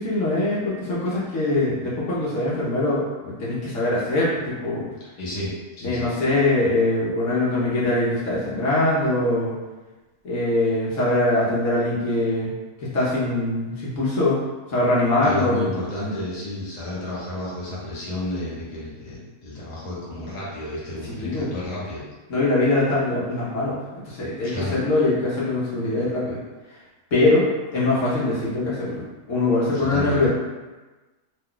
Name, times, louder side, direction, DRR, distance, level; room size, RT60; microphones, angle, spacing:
voice 1, 0.0-4.9 5.8-9.5 10.2-12.5 12.8-14.4 14.7-15.7 21.0-21.5 22.3-26.4 27.1-27.5 27.7-30.3, left 2 dB, 65° left, -7 dB, 1.1 m, -22 dB
voice 2, 5.1-6.1 15.2-22.0 24.5-24.8 29.7-30.3, left 1 dB, 35° left, -8 dB, 0.9 m, -31 dB
2.9 x 2.2 x 3.7 m, 1.2 s
omnidirectional pair, 1.5 m